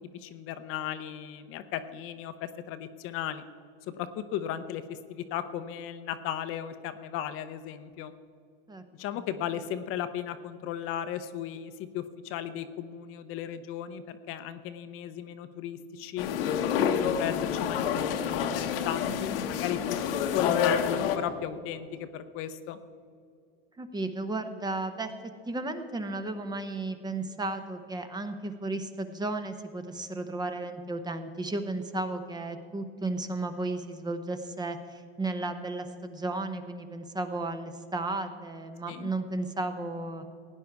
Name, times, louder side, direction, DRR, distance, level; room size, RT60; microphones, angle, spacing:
voice 1, 0.1-3.4 4.0-8.1 9.0-16.3 16.6-22.8 38.9-39.1, left 10 dB, 50° left, 10 dB, 0.7 m, -36 dB
sound 1, 16.2-21.2, left 8 dB, 70° left, 1.1 m, -28 dB
voice 2, 23.8-25.1 25.5-40.2, right 2 dB, 15° right, 9 dB, 0.8 m, -34 dB
16.5 x 9.5 x 4.7 m, 2.3 s
hypercardioid pair, 110°, 29 cm